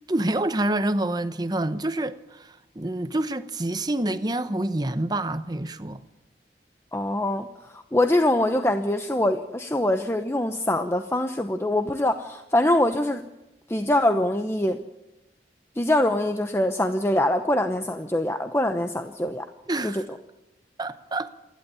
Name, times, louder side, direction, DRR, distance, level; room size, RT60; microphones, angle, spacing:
voice 1, 0.1-6.0 19.7-20.1 20.8-21.3, right 1 dB, 25° right, 0.9 m, -27 dB
voice 2, 6.9-13.3 13.7-14.8 15.8-19.5 19.8-20.0, left 1 dB, 15° left, 0.9 m, -24 dB
27.5 x 11.5 x 9.7 m
head